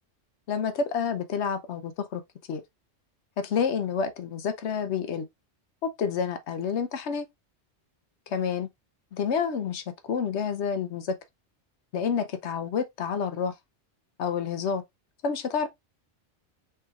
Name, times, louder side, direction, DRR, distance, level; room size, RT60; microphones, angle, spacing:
voice 1, 0.5-2.2 2.5-2.6 3.4-5.3 5.8-7.3 8.3-8.7 9.1-11.1 11.9-13.5 14.2-14.8 15.2-15.7, left 6 dB, 75° left, 1.0 m, -29 dB
5.7 x 3.6 x 2.4 m
omnidirectional pair, 1.2 m